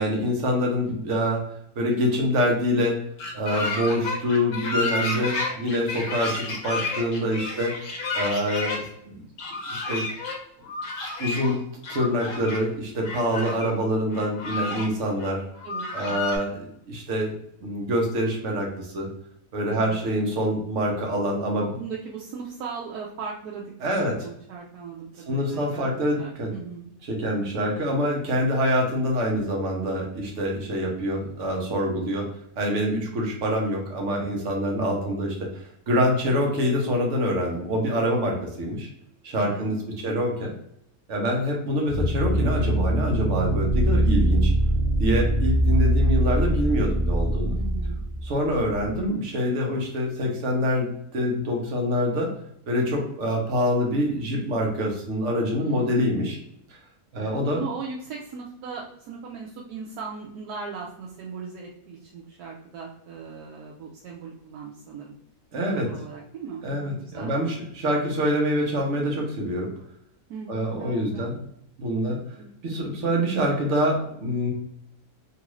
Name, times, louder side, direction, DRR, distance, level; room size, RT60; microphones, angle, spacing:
voice 1, 0.0-1.4 1.8-3.0 3.3-9.2 9.7-10.0 11.2-11.6 11.9-15.4 15.9-17.3 17.6-19.1 19.5-21.7 23.8-24.1 25.3-26.5 27.1-32.3 32.6-38.9 39.2-39.8 40.0-40.5 41.1-44.5 45.0-47.6 48.2-52.3 52.7-56.4 57.1-57.6 65.5-65.9 66.6-69.7 70.5-71.4 71.8-72.2 72.6-74.5, equal, 55° right, 0 dB, 1.0 m, -25 dB
sound 1, 3.2-8.8 9.4-10.4 10.6-11.6 11.8-12.6 13.0-13.7 14.1-14.9 15.2-15.3 15.6-16.4, left 3 dB, 60° left, 1.0 m, -31 dB
voice 2, 15.6-16.4 19.7-20.1 21.6-23.9 24.2-26.9 39.4-39.7 40.0-40.1 47.5-48.0 55.6-56.1 57.1-65.1 65.8-67.3 70.3-71.3 72.4-72.5, right 5 dB, 85° right, -3 dB, 1.1 m, -38 dB
sound 2, 41.9-49.0, right 1 dB, 10° right, 1.0 m, -23 dB
3.0 x 2.5 x 3.0 m, 0.72 s
omnidirectional pair, 1.6 m